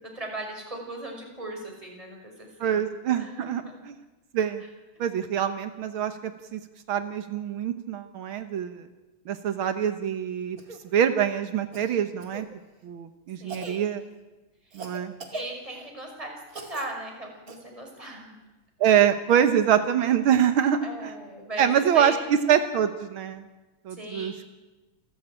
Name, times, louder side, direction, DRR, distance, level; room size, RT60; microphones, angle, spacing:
voice 1, 0.0-2.8 3.2-3.8 13.4-14.1 14.7-14.8 15.3-18.4 20.8-22.3 23.9-24.5, right 1 dB, 10° right, 1 dB, 5.5 m, -38 dB
voice 2, 2.6-4.0 4.3-4.6 5.0-6.6 6.9-8.9 9.2-10.6 10.9-12.5 12.8-14.0 14.7-15.1 18.8-21.1 21.6-23.5 23.8-24.4, right 9 dB, 85° right, 9 dB, 1.1 m, -25 dB
Cough, 10.6-10.8 11.7-12.5 13.5-13.8 14.7-15.9 16.5-16.9 17.5-17.6 19.4-19.5, right 2 dB, 30° right, 2.3 m, -40 dB
28.0 x 14.5 x 9.0 m, 1.1 s
omnidirectional pair, 4.0 m